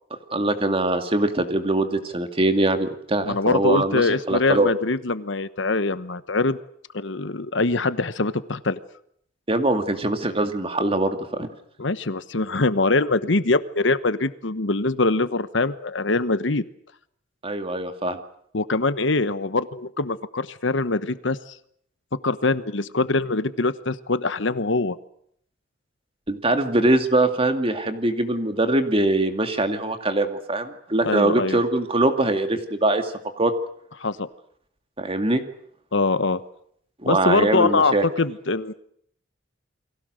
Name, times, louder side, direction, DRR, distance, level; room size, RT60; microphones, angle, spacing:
voice 1, 0.3-4.7 9.5-11.5 17.4-18.2 26.3-33.5 35.0-35.4 37.0-38.0, right 2 dB, 30° right, 7 dB, 2.4 m, -22 dB
voice 2, 3.2-6.6 6.9-8.8 11.8-16.6 18.5-21.5 22.2-25.0 31.0-31.6 34.0-34.3 35.9-36.4 37.0-38.7, left 3 dB, 65° left, 14 dB, 1.1 m, -23 dB
29.5 x 22.5 x 6.5 m, 0.68 s
head